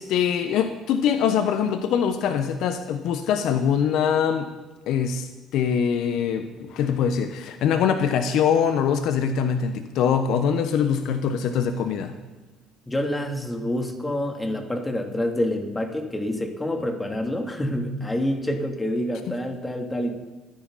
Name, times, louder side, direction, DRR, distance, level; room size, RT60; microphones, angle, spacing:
voice 1, 0.0-4.5 4.9-12.1, left 7 dB, 70° left, 9 dB, 1.1 m, -23 dB
voice 2, 12.9-20.2, left 1 dB, 15° left, 3 dB, 3.2 m, -27 dB
26.5 x 10.5 x 4.3 m, 1.2 s
hypercardioid pair, 65°, 0 cm